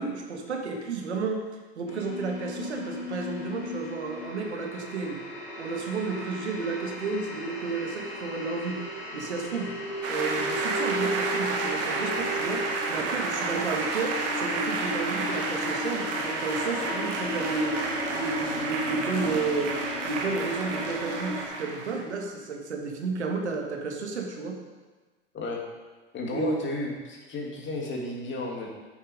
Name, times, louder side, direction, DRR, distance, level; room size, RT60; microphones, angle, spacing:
voice 1, 0.0-1.5 1.8-5.2 5.6-8.8 9.1-9.7 10.1-17.8 18.2-19.8 20.0-24.6 26.3-26.6, right 4 dB, 85° right, 2 dB, 1.5 m, -32 dB
sound 1, 1.9-21.5, left 1 dB, 80° left, 2.4 m, -35 dB
sound 2, 10.0-22.1, right 3 dB, 45° right, 1.6 m, -31 dB
voice 2, 26.1-28.7, left 2 dB, 35° left, -1 dB, 2.6 m, -33 dB
8.7 x 7.2 x 5.1 m, 1.3 s
hypercardioid pair, 85°, 33 cm